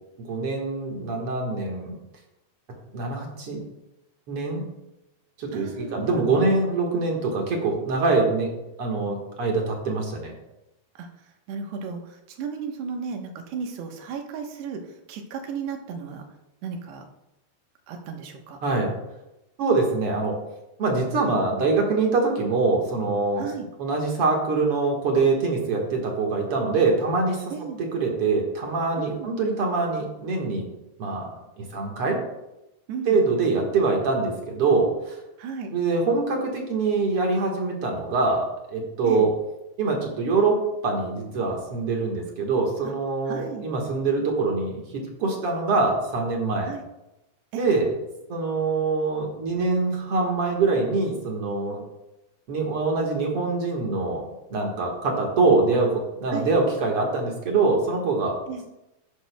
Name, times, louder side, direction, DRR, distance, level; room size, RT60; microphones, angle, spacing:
voice 1, 0.2-1.9 2.9-3.6 4.3-4.7 5.4-8.5 8.8-10.3 18.6-18.9 19.6-20.4 20.8-23.5 23.8-27.5 27.8-30.7 31.0-31.3 31.6-32.2 33.1-35.2 35.7-39.3 39.8-46.7 47.6-47.9 48.3-51.8 52.5-58.4, right 3 dB, 55° right, 0 dB, 1.7 m, -24 dB
voice 2, 5.5-6.4 11.0-11.1 11.5-14.8 15.1-16.2 16.6-17.1 17.9-18.6 23.4-23.7 27.5-27.8 29.0-29.3 32.9-33.2 35.4-35.7 39.0-39.3 42.8-42.9 43.3-43.6 46.6-46.8 47.5-47.7 56.3-56.5 58.5-58.6, right 6 dB, 85° right, 3 dB, 3.2 m, -34 dB
13.5 x 11.0 x 2.3 m, 0.93 s
omnidirectional pair, 4.6 m